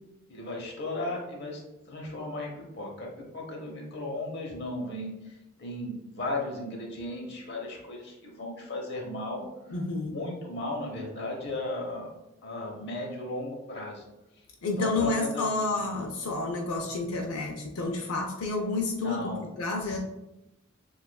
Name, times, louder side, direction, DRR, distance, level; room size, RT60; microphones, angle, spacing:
voice 1, 0.3-1.6 1.9-9.4 10.1-12.1 12.4-14.0 14.8-15.4 19.0-19.4 19.8-20.0, left 2 dB, 50° left, 0 dB, 0.9 m, -36 dB
voice 2, 9.7-10.2 14.6-19.3 19.6-20.0, left 2 dB, 90° left, 1 dB, 0.5 m, -30 dB
6.6 x 2.5 x 2.3 m, 0.94 s
head